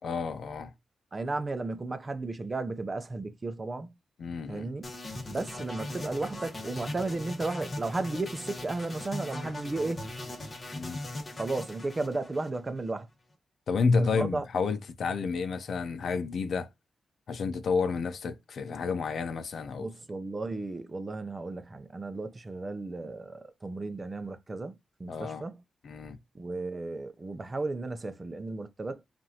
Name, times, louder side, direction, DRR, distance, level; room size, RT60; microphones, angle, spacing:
voice 1, 0.0-0.7 4.2-4.7 10.7-11.1 13.7-16.7 17.3-19.9 25.1-25.4 25.8-26.2, left 4 dB, 70° left, 0.6 m, -30 dB
voice 2, 1.1-3.9 4.5-4.8 5.3-10.1 11.4-13.1 14.0-14.4 19.8-25.6 26.3-29.0, right 3 dB, 30° right, 0.6 m, -34 dB
sound 1, 4.8-12.9, left 1 dB, 35° left, 1.5 m, -40 dB
5.4 x 2.6 x 2.8 m
cardioid pair, 90°, 0 cm